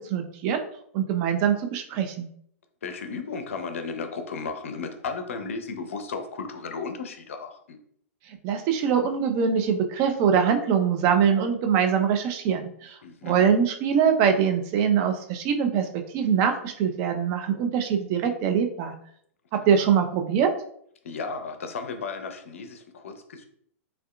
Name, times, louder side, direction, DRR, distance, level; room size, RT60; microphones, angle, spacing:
voice 1, 0.1-0.6 0.9-2.3 8.4-13.0 13.2-15.9 16.1-18.9 19.5-20.5, right 7 dB, 35° right, 5 dB, 0.4 m, -23 dB
voice 2, 2.8-7.8 13.0-13.4 19.6-19.8 21.0-23.5, left 4 dB, 60° left, 7 dB, 0.5 m, -34 dB
3.4 x 2.3 x 2.3 m, 0.66 s
figure-of-eight pair, 105°, 8 cm